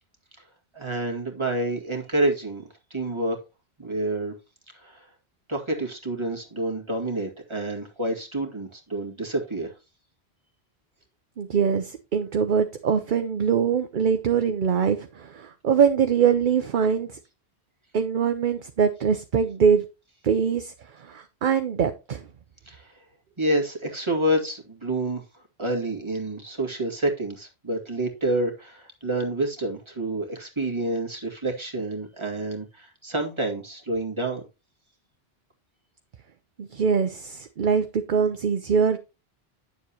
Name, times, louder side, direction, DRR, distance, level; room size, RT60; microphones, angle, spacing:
voice 1, 0.7-2.6 2.9-3.4 3.8-4.3 4.7-5.1 5.5-9.7 22.7-23.0 23.4-34.4, right 1 dB, 25° right, 2.1 m, -28 dB
voice 2, 11.4-17.1 17.9-19.8 20.2-22.2 36.6-39.0, right 7 dB, 55° right, 0.8 m, -23 dB
10.0 x 7.2 x 2.9 m
omnidirectional pair, 1.1 m